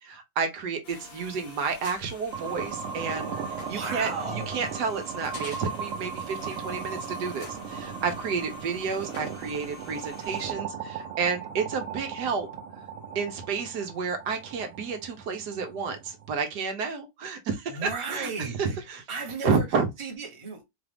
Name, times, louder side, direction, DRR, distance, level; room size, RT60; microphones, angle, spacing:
voice 1, 0.0-12.5 13.1-19.0 19.4-19.9, right 5 dB, 75° right, 1.4 m, -31 dB
sound 1, 0.8-10.5, left 3 dB, 65° left, 1.6 m, -48 dB
sound 2, 2.3-16.3, right 6 dB, 55° right, 1.2 m, -37 dB
voice 2, 3.7-4.5 17.7-18.8 19.1-19.6 20.0-20.6, right 4 dB, 20° right, 1.1 m, -34 dB
4.4 x 2.4 x 3.3 m
omnidirectional pair, 1.8 m